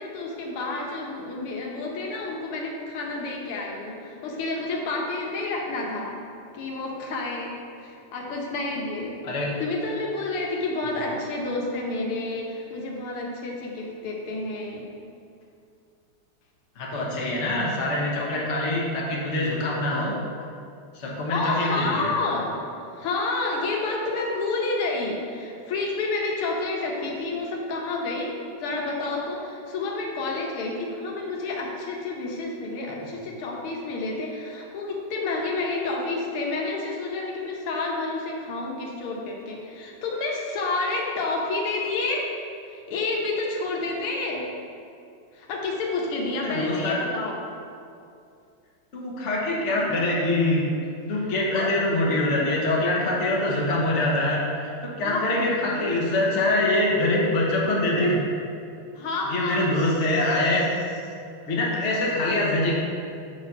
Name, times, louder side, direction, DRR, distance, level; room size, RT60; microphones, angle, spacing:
voice 1, 0.0-6.1 6.5-7.5 7.8-9.2 9.6-14.9 21.0-22.6 22.9-42.3 42.7-44.5 45.3-47.4 51.5-51.7 55.0-55.4 59.0-59.9 60.1-60.2, left 3 dB, 80° left, -1 dB, 1.8 m, -29 dB
voice 2, 9.2-9.5 16.8-20.2 20.9-22.1 46.4-47.0 48.9-50.7 51.1-58.2 59.3-60.7 61.4-62.7, left 1 dB, 45° left, -4 dB, 1.1 m, -24 dB
7.2 x 4.1 x 5.2 m, 2.4 s
omnidirectional pair, 2.4 m